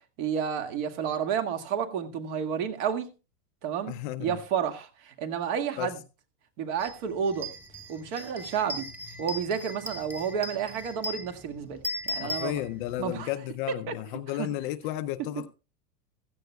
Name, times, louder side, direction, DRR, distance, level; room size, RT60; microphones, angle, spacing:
voice 1, 0.2-3.1 3.6-3.9 4.2-6.0 6.6-7.5 7.9-8.9 9.2-12.6 13.0-13.3 13.7-13.9 14.4-14.5, right 7 dB, 55° right, 1.9 m, -31 dB
voice 2, 3.9-4.4 5.8-5.9 12.1-15.5, left 14 dB, 35° left, 0.5 m, -33 dB
sound 1, 6.8-6.9 7.3-13.1, equal, 5° right, 1.3 m, -38 dB
16.0 x 14.0 x 2.3 m
supercardioid pair, 155°, 45 cm